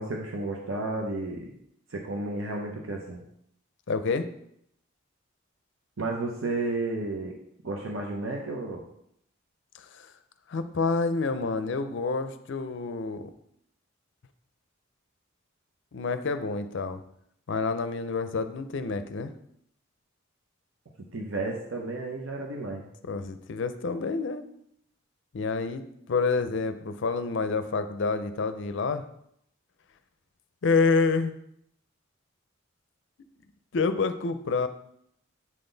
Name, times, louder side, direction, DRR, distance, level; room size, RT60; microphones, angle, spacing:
voice 1, 0.0-1.5 1.9-3.2 6.0-7.3 7.6-8.8 21.1-22.9, right 2 dB, 75° right, 0 dB, 0.8 m, -32 dB
voice 2, 3.9-4.3 9.8-10.1 10.5-13.3 15.9-17.0 17.5-19.3 23.1-24.4 25.3-29.0 30.6-31.3 33.7-34.7, left 4 dB, 60° left, 11 dB, 0.5 m, -28 dB
7.5 x 3.9 x 3.9 m, 0.73 s
head